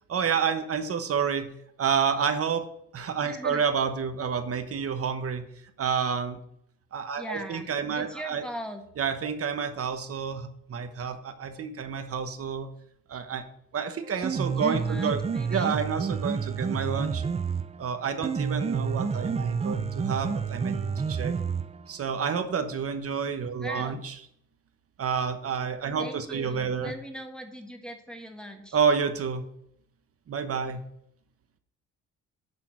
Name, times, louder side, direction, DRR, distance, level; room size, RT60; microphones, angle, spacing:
voice 1, 0.1-1.5 1.8-2.6 2.9-5.5 5.8-6.4 6.9-8.4 9.0-12.7 13.1-13.4 13.7-15.2 15.5-17.2 17.8-21.4 21.9-24.1 25.0-26.9 28.7-29.5 30.3-30.8, right 6 dB, 50° right, 8 dB, 1.1 m, -29 dB
voice 2, 3.2-3.6 7.2-8.8 14.5-15.7 23.6-24.0 26.0-28.8, equal, 5° left, 4 dB, 1.4 m, -40 dB
Piano, 14.0-22.0, right 5 dB, 20° right, 0.4 m, -29 dB
10.5 x 3.8 x 6.1 m, 0.74 s
cardioid pair, 90°, 30 cm